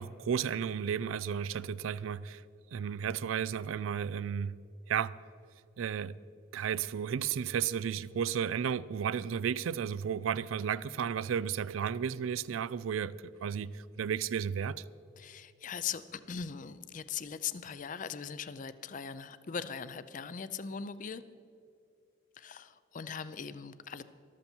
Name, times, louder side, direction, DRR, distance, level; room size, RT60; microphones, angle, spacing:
voice 1, 0.0-2.4 2.7-4.5 4.9-5.2 5.8-6.2 6.5-13.1 13.4-14.8, right 7 dB, 90° right, 0.4 m, -33 dB
voice 2, 15.2-21.2 22.4-24.0, left 7 dB, 40° left, 0.5 m, -40 dB
13.5 x 13.0 x 4.4 m
head